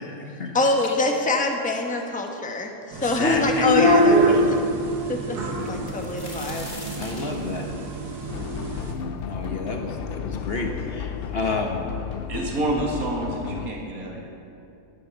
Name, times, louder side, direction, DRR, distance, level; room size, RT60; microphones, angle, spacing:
voice 1, 0.0-0.6 0.9-1.0 3.0-4.5 7.0-7.7 9.2-11.8, left 3 dB, 45° left, 2 dB, 1.2 m, -30 dB
voice 2, 0.5-4.2 4.5-4.6 5.1-5.4 5.6-6.7, left 2 dB, 5° left, 2 dB, 1.0 m, -24 dB
sound 1, 2.9-8.9, equal, 90° right, 2.0 m, -24 dB
sound 2, 5.6-9.4 9.9-10.0 10.8-10.9 11.2-11.8 12.7-12.8 13.2-13.4, left 1 dB, 25° left, 3.8 m, -42 dB
sound 3, 8.3-13.7, left 7 dB, 85° left, 0.5 m, -33 dB
voice 3, 12.3-14.3, right 2 dB, 65° right, -2 dB, 2.3 m, -28 dB
12.0 x 9.7 x 7.1 m, 2.7 s
omnidirectional pair, 1.6 m